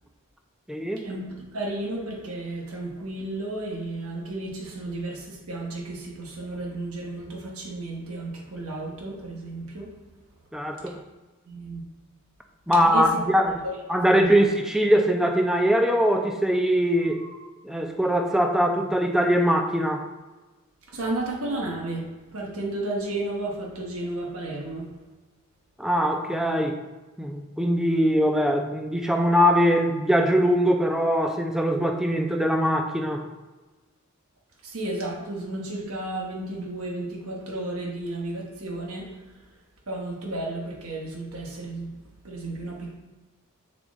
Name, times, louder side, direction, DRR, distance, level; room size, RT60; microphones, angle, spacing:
voice 1, 0.7-1.1 10.5-11.0 12.7-13.6 13.9-17.2 17.6-20.0 25.8-26.8 27.2-33.2, equal, ahead, 3 dB, 0.4 m, -22 dB
voice 2, 1.5-9.9 11.5-11.8 12.8-13.1 13.6-13.8 14.1-14.3 17.2-17.4 20.9-22.0 22.3-24.9 34.6-39.1 39.9-41.9 42.2-42.9, right 2 dB, 80° right, -1 dB, 1.1 m, -33 dB
6.7 x 4.1 x 3.6 m, 1.2 s
head